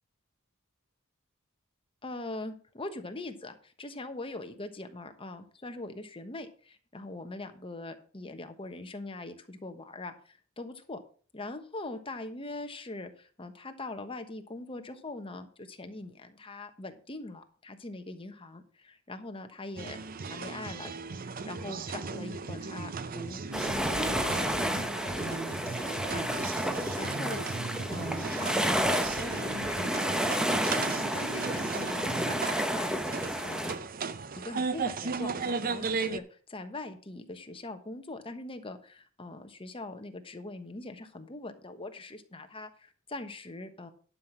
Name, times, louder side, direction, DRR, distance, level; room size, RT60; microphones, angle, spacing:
voice 1, 2.0-11.0 11.3-20.0 20.2-26.5 26.9-30.7 31.1-33.7 34.3-43.9, left 2 dB, 25° left, 7 dB, 1.2 m, -42 dB
sound 1, 19.8-36.2, right 4 dB, 45° right, 0.6 m, -36 dB
sound 2, 23.5-33.7, equal, 5° right, 0.9 m, -31 dB
11.5 x 5.9 x 6.1 m, 0.42 s
head